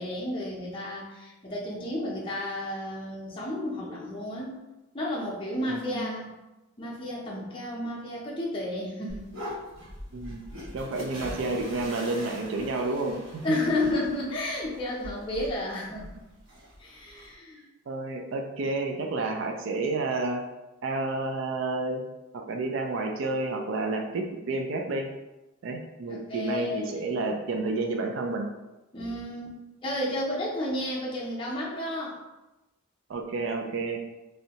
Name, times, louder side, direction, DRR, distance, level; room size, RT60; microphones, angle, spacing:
voice 1, 0.0-4.6 4.9-6.3 6.8-9.3 13.4-16.2 16.8-17.6 26.1-27.5 28.9-29.5 29.8-32.2, left 1 dB, 25° left, -5 dB, 0.6 m, -32 dB
voice 2, 5.7-6.1 10.1-10.5 10.7-13.2 17.9-20.4 20.8-22.1 22.3-25.1 25.6-28.5 33.1-34.0, right 3 dB, 65° right, 3 dB, 0.4 m, -30 dB
sound 1, 9.1-17.3, equal, 90° right, 1.3 m, -42 dB
3.1 x 2.7 x 2.8 m, 1.0 s
head